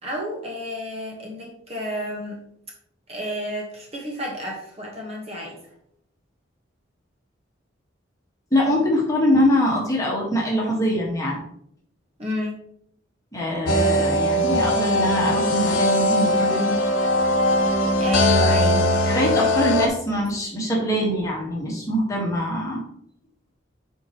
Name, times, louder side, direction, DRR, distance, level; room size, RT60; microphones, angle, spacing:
voice 1, 0.0-2.4 3.1-5.6 12.2-12.5 18.0-18.9, left 1 dB, 30° right, -1 dB, 1.4 m, -30 dB
voice 2, 8.5-11.4 13.3-16.8 19.0-22.8, equal, 15° left, -3 dB, 1.6 m, -23 dB
sound 1, 13.7-19.9, left 1 dB, 85° left, 1.0 m, -20 dB
8.4 x 4.7 x 3.1 m, 0.70 s
head